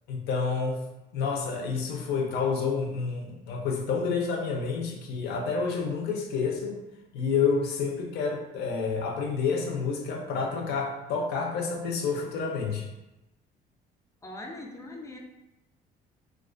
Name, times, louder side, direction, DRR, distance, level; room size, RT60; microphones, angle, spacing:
voice 1, 0.1-0.8 1.1-6.8 7.1-12.9, left 5 dB, 75° left, 1 dB, 0.5 m, -29 dB
voice 2, 14.2-15.2, left 2 dB, 20° left, 1 dB, 0.3 m, -41 dB
2.3 x 2.3 x 2.4 m, 0.96 s
cardioid pair, 110°, 17 cm